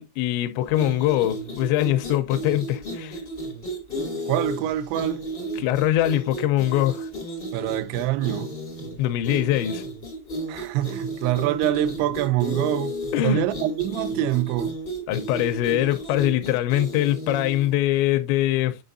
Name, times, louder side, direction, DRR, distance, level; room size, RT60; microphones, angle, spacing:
voice 1, 0.0-3.2 5.6-7.1 9.0-9.8 13.1-13.4 15.1-18.8, left 13 dB, 80° left, 2.7 m, -23 dB
sound 1, 0.7-17.7, right 1 dB, 50° left, 0.6 m, -33 dB
voice 2, 4.3-5.2 7.5-8.5 10.5-13.0 13.2-14.8, right 13 dB, 85° right, 2.7 m, -25 dB
8.9 x 5.3 x 2.6 m
omnidirectional pair, 5.5 m